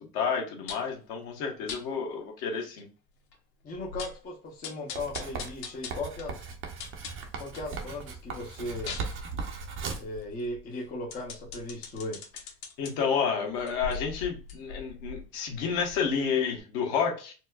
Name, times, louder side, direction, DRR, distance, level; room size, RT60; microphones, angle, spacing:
voice 1, 0.1-2.9 12.8-17.3, left 6 dB, 50° left, 2 dB, 1.2 m, -30 dB
sound 1, 0.7-1.0 1.7-1.8 2.4-2.5 2.8-2.9 3.3-3.4 3.7-4.2 4.6-7.7 8.1-12.9 13.5-16.2 16.5-16.6, left 5 dB, 85° left, 1.1 m, -42 dB
voice 2, 3.6-6.5 7.4-9.0 10.0-12.2, left 2 dB, 20° left, -3 dB, 0.6 m, -37 dB
Writing, 4.9-10.2, right 5 dB, 25° right, 0.6 m, -38 dB
4.3 x 2.1 x 2.3 m, 0.36 s
supercardioid pair, 130°, 48 cm